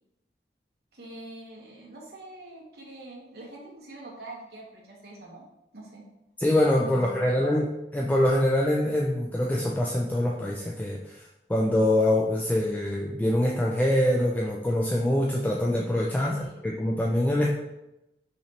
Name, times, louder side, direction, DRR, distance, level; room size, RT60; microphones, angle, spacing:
voice 1, 0.9-5.4 5.7-6.0 6.8-7.5 16.1-16.7, right 1 dB, 60° right, -2 dB, 1.1 m, -44 dB
voice 2, 6.4-7.7 7.9-11.2 11.5-17.5, left 1 dB, 10° left, -3 dB, 0.3 m, -24 dB
5.5 x 3.0 x 2.9 m, 0.92 s
head